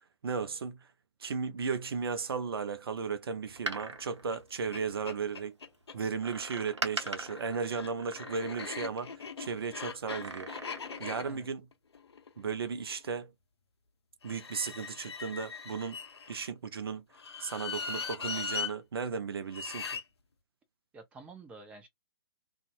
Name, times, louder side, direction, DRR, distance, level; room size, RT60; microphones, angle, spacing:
voice 1, 0.2-0.9 1.2-5.6 5.9-10.5 11.0-11.6 12.4-13.3 14.2-16.0 16.3-17.0 17.4-20.0, right 5 dB, 55° right, 0.5 m, -35 dB
Door, 3.4-5.3 6.2-9.1 10.0-11.1 11.5-11.6, right 3 dB, 75° right, 0.9 m, -41 dB
sound 1, 4.3-4.4 4.7-4.8 5.1-6.0 6.9-13.1 14.2-16.5 17.1-18.7 19.5-20.0, left 5 dB, 65° left, 0.6 m, -40 dB
voice 2, 20.9-21.9, right 3 dB, 10° right, 0.6 m, -49 dB
2.6 x 2.4 x 2.4 m
figure-of-eight pair, 125°, 15 cm